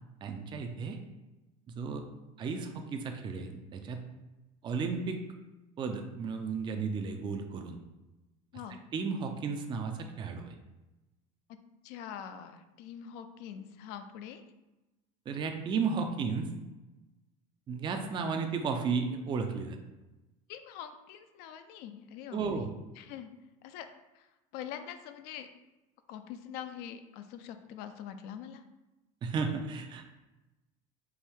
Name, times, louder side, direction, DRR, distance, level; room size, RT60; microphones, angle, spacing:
voice 1, 0.2-1.0 1.8-2.0 2.4-4.0 4.6-5.2 5.8-7.8 8.9-10.5 15.3-16.5 17.7-19.8 22.3-22.7 29.2-30.0, right 5 dB, 25° right, 4 dB, 0.4 m, -33 dB
voice 2, 11.8-14.4 20.5-22.6 23.0-23.3 23.6-23.9 24.1-24.3 24.5-25.5 26.1-28.6, left 9 dB, 65° left, 9 dB, 0.5 m, -44 dB
4.6 x 2.6 x 3.5 m, 1.0 s
supercardioid pair, 120°, 18 cm